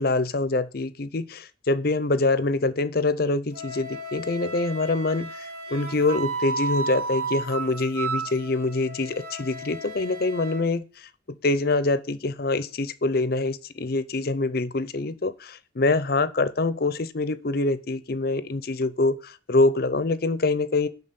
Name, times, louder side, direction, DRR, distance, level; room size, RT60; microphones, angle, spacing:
voice 1, 0.0-10.8 11.4-20.9, left 2 dB, 55° left, 0.7 m, -25 dB
Wind instrument woodwind instrument, 3.5-10.6, right 3 dB, 55° right, 2.6 m, -33 dB
11.0 x 4.0 x 6.9 m
head